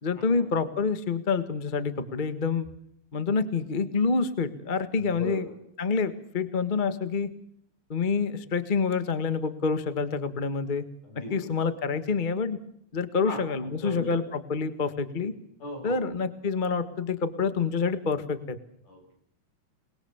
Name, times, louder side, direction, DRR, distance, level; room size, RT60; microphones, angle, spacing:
voice 1, 0.0-2.7 3.1-5.4 5.8-7.3 7.9-10.8 11.3-12.6 12.9-15.3 15.8-18.6, left 5 dB, 30° left, 10 dB, 0.9 m, -27 dB
voice 2, 4.9-5.6 11.0-11.6 13.2-13.4 13.8-14.1 15.6-16.1 18.9-19.1, left 2 dB, 85° left, 3 dB, 9.5 m, -37 dB
28.5 x 21.0 x 7.2 m, 0.72 s
omnidirectional pair, 3.5 m